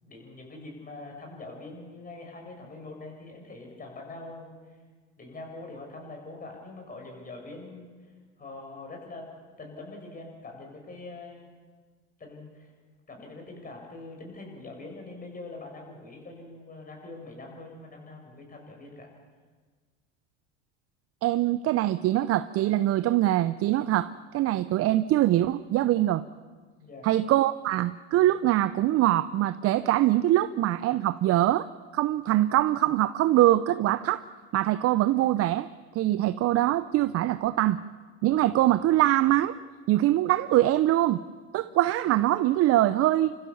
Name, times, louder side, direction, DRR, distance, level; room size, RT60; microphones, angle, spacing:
voice 1, 0.0-4.8 5.2-8.1 8.4-9.3 9.6-11.5 12.2-12.7 13.1-19.1 26.8-27.1, left 2 dB, 25° left, 1 dB, 6.9 m, -43 dB
voice 2, 21.2-26.2 27.0-31.7 31.9-34.2 34.5-35.7 35.9-37.8 38.2-39.5 39.9-41.2 41.5-43.4, right 14 dB, 40° right, 13 dB, 0.7 m, -23 dB
29.0 x 15.0 x 7.1 m, 1.5 s
hypercardioid pair, 95°, 36 cm